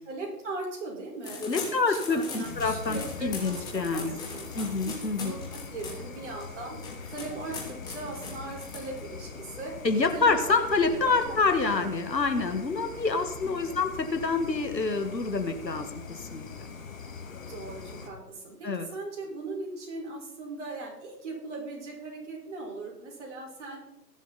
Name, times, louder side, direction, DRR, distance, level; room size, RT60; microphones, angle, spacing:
voice 1, 0.0-4.7 5.2-6.7 7.1-9.7 10.1-10.5 10.9-11.4 11.7-12.0 13.4-13.7 17.4-23.8, right 3 dB, 45° right, -1 dB, 5.1 m, -39 dB
sound 1, 1.2-9.3, left 4 dB, 10° left, 1.8 m, -41 dB
voice 2, 1.4-4.2 4.5-5.3 9.8-16.5 18.6-18.9, left 4 dB, 90° left, 7 dB, 2.0 m, -27 dB
sound 2, 2.4-18.1, left 5 dB, 55° left, 2.3 m, -42 dB
20.5 x 7.4 x 4.2 m, 0.87 s
figure-of-eight pair, 150°, 49 cm